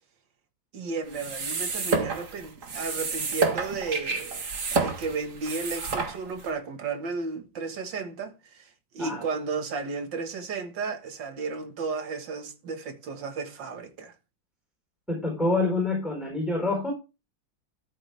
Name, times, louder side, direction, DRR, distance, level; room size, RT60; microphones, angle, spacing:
voice 1, 0.7-8.7 8.9-14.1, right 4 dB, 65° right, 2.2 m, -33 dB
sound 1, 1.1-6.5, right 4 dB, 40° right, 1.8 m, -30 dB
voice 2, 15.1-16.9, left 2 dB, ahead, 3.9 m, -26 dB
13.0 x 8.1 x 3.4 m
omnidirectional pair, 2.2 m